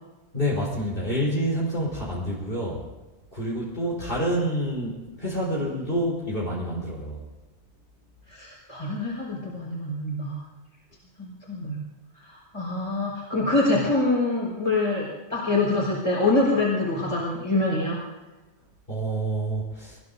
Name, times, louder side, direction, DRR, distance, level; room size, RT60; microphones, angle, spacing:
voice 1, 0.3-2.8 3.3-7.2 18.9-20.0, equal, 55° left, -6 dB, 4.6 m, -28 dB
voice 2, 8.3-10.4 11.2-11.8 12.2-18.0, left 2 dB, 25° left, -4 dB, 4.8 m, -25 dB
24.5 x 20.5 x 2.7 m, 1.1 s
omnidirectional pair, 1.2 m